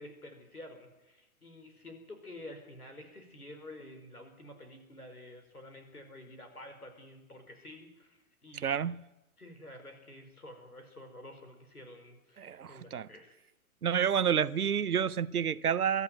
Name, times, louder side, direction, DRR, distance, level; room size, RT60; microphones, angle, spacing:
voice 1, 0.0-8.8 9.4-13.4, left 1 dB, 85° left, 4.9 m, -50 dB
voice 2, 8.6-9.0 12.4-13.1 13.8-16.0, right 8 dB, 80° right, 0.8 m, -29 dB
23.5 x 14.0 x 9.2 m
figure-of-eight pair, 105°, 44 cm